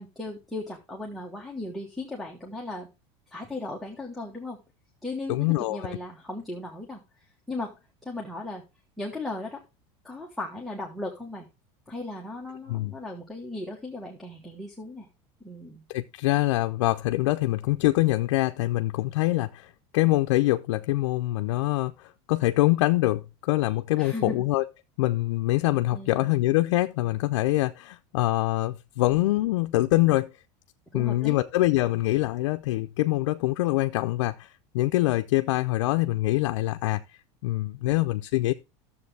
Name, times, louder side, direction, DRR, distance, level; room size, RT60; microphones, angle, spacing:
voice 1, 0.0-2.9 3.3-4.6 5.0-7.0 7.5-7.8 8.0-8.6 9.0-9.6 10.0-11.5 11.9-15.1 15.4-15.8 24.0-24.5 25.9-26.3 30.9-31.4, left 2 dB, ahead, 1.1 m, -36 dB
voice 2, 5.3-6.0 12.7-12.9 15.9-24.6 25.0-30.3 30.9-37.0 37.4-38.5, left 17 dB, 90° left, 0.5 m, -24 dB
12.0 x 7.2 x 3.3 m
supercardioid pair, 155°, 15 cm